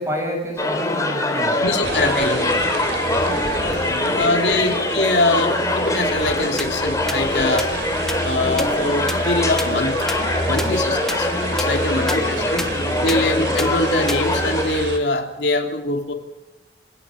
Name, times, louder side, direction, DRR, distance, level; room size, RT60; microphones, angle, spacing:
voice 1, 0.0-2.2 2.4-4.2 4.5-4.7 10.5-10.8 11.8-13.2, equal, 15° right, 1 dB, 7.8 m, -32 dB
sound 1, 0.6-14.6, left 1 dB, 20° left, 3.7 m, -23 dB
voice 2, 1.6-2.4 4.1-7.7 8.2-10.0 10.5-11.3 11.6-12.6 13.0-16.1, left 2 dB, 75° left, 3 dB, 3.0 m, -23 dB
sound 2, 1.8-15.0, right 2 dB, 75° right, 3.2 m, -30 dB
sound 3, 6.6-6.7 7.1-7.2 7.6-7.7 8.1-8.2 8.6-8.7 9.1-9.2 9.6-9.7 10.1-10.2 10.6-10.7 11.1-11.2 11.6-11.7 12.1-12.2 12.6-12.7 13.1-13.2 13.6-13.7 14.1-14.2, left 1 dB, 5° left, 1.5 m, -26 dB
27.0 x 17.5 x 6.4 m, 0.93 s
head